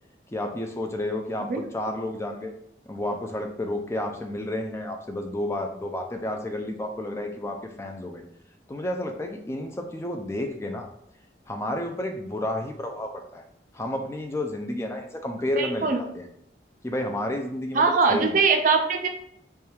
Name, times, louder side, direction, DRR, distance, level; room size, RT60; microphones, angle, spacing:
voice 1, 0.3-2.5 2.9-8.2 8.7-10.9 11.5-13.4 13.7-16.3 16.8-18.4, left 1 dB, 15° left, 4 dB, 0.3 m, -31 dB
voice 2, 15.6-16.0 17.7-19.1, right 4 dB, 45° right, 4 dB, 0.4 m, -21 dB
3.4 x 2.3 x 4.3 m, 0.72 s
head